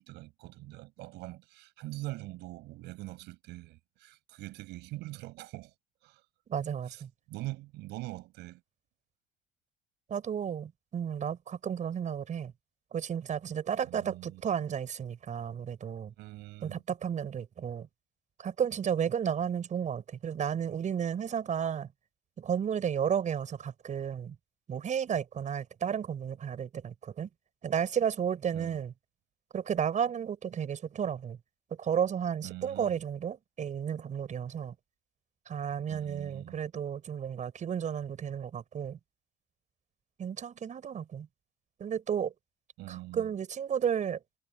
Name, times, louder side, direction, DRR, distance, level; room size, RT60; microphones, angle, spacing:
voice 1, 0.0-5.7 6.0-6.2 6.9-7.0 7.3-8.6 13.8-14.4 16.2-16.8 28.5-28.8 32.4-33.0 35.9-36.6 42.8-43.3, right 19 dB, 90° right, 6.8 m, -43 dB
voice 2, 6.5-7.1 10.1-12.5 12.9-16.1 16.6-17.9 18.4-21.9 22.4-24.4 24.7-27.3 27.6-28.9 29.5-31.4 31.8-34.7 35.5-39.0 40.2-41.3 41.8-42.3 42.9-44.2, right 8 dB, 45° right, 6.5 m, -33 dB
cardioid pair, 110°, 17 cm